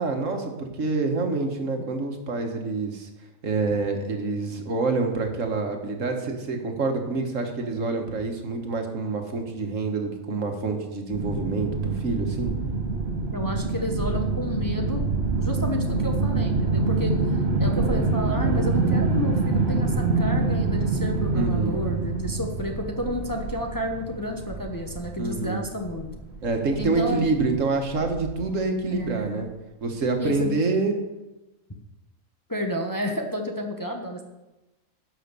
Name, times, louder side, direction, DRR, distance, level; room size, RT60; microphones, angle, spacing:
voice 1, 0.0-3.1 3.4-12.5 21.3-21.8 25.2-25.6 26.4-29.5 29.8-31.0, right 3 dB, 75° right, 4 dB, 1.7 m, -27 dB
sound 1, 11.1-28.5, right 3 dB, 55° right, 1.6 m, -26 dB
voice 2, 13.3-15.0 15.4-26.1 26.8-27.3 28.9-29.5 30.2-30.5 32.5-34.2, left 1 dB, 15° left, 2 dB, 0.9 m, -31 dB
11.5 x 5.7 x 6.8 m, 1.0 s
omnidirectional pair, 1.4 m